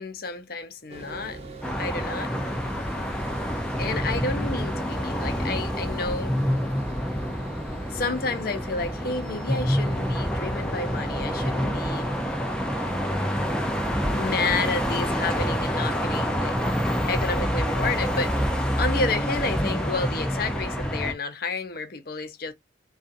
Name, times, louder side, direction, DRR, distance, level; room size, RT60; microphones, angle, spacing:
voice 1, 0.0-1.4 1.8-2.3 3.8-6.4 7.9-12.1 14.1-16.5 17.1-18.5 18.8-22.5, left 3 dB, 50° left, 0.6 m, -30 dB
sound 1, 0.9-16.5, right 1 dB, 35° right, 0.7 m, -42 dB
sound 2, 1.6-21.1, equal, 5° left, 0.4 m, -27 dB
2.5 x 2.4 x 2.6 m
head